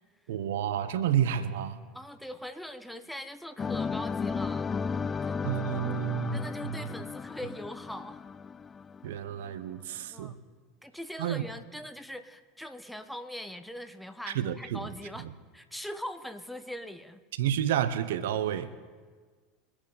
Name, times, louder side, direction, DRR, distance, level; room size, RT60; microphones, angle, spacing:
voice 1, 0.3-1.8 5.4-6.4 9.0-10.3 11.2-11.4 14.3-14.9 15.2-15.3 17.4-18.7, right 10 dB, 75° right, 13 dB, 0.7 m, -30 dB
voice 2, 1.9-4.8 5.3-5.4 6.3-8.2 10.1-10.4 10.8-15.3 15.5-17.2, equal, 5° left, 9 dB, 1.2 m, -41 dB
sound 1, 3.6-9.5, left 5 dB, 25° left, 0.3 m, -34 dB
23.0 x 8.8 x 4.0 m, 1.5 s
hypercardioid pair, 80°, 0 cm